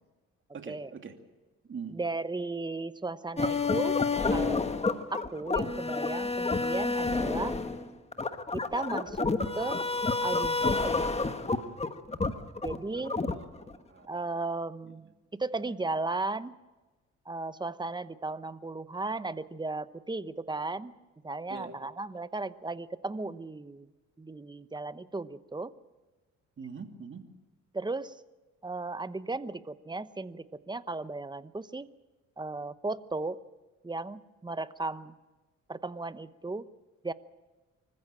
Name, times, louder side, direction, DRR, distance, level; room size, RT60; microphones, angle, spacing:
voice 1, 0.5-1.2 1.7-2.0 12.9-14.2 14.8-15.1 21.5-21.7 26.6-27.2, right 5 dB, 40° right, 5 dB, 2.6 m, -44 dB
voice 2, 1.9-4.0 4.3-4.7 5.1-7.6 8.5-9.8 10.2-11.0 12.6-13.2 14.1-16.5 17.3-20.9 21.2-23.9 24.2-25.7 27.7-28.2 28.6-31.9 32.4-33.4 33.8-35.1 35.7-36.7 37.0-37.1, right 3 dB, 15° right, 14 dB, 0.9 m, -35 dB
sound 1, 3.4-13.8, left 3 dB, 20° left, 1.5 m, -29 dB
25.0 x 15.0 x 8.9 m, 1.2 s
cardioid pair, 90°, 30 cm